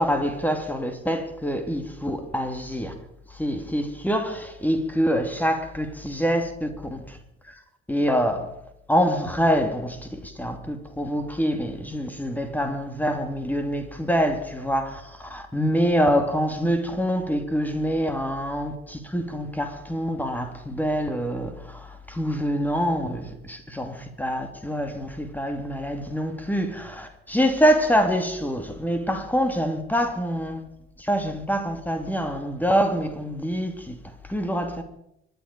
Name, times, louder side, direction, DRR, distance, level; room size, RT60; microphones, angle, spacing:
voice 1, 0.0-2.9 3.3-7.2 7.4-7.5 7.9-8.5 8.9-30.6 31.0-34.8, equal, 5° left, 2.7 m, -25 dB
25.0 x 10.5 x 5.3 m
figure-of-eight pair, 50°, 30 cm